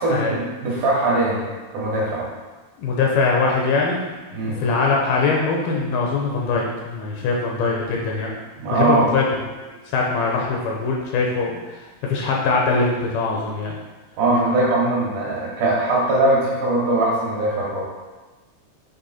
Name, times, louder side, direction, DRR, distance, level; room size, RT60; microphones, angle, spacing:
voice 1, 0.0-2.2 4.3-4.6 8.6-9.1 14.2-17.8, right 2 dB, 65° right, -5 dB, 2.9 m, -21 dB
voice 2, 2.8-4.0 4.3-8.3 8.7-9.4 9.7-13.8, left 4 dB, 80° left, -1 dB, 2.3 m, -22 dB
8.2 x 3.4 x 4.1 m, 1.2 s
omnidirectional pair, 4.7 m